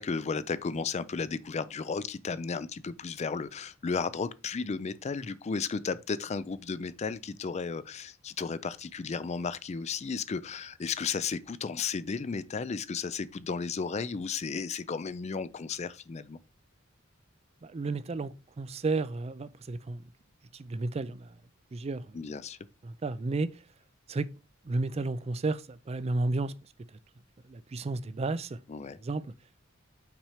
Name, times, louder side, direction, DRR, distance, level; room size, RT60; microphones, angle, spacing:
voice 1, 0.0-16.4 22.1-22.6 28.7-29.0, left 5 dB, 35° left, 0.4 m, -34 dB
voice 2, 17.6-20.0 20.5-21.3 21.7-22.2 22.8-23.5 24.1-24.3 24.7-26.5 27.5-28.6 29.0-29.2, right 3 dB, 30° right, 0.4 m, -32 dB
6.0 x 4.3 x 4.8 m
head